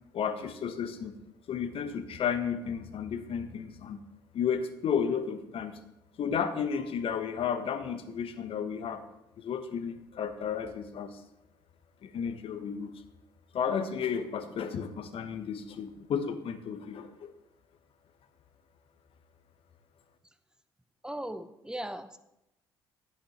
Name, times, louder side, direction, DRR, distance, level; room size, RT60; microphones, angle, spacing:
voice 1, 0.1-1.1 1.5-4.0 4.3-5.8 6.2-9.0 9.4-11.2 12.0-12.9 13.5-17.3, left 7 dB, 50° left, 9 dB, 1.1 m, -33 dB
voice 2, 21.0-22.2, right 1 dB, 5° right, 11 dB, 0.7 m, -38 dB
11.0 x 8.2 x 3.1 m, 0.87 s
figure-of-eight pair, 50°, 12 cm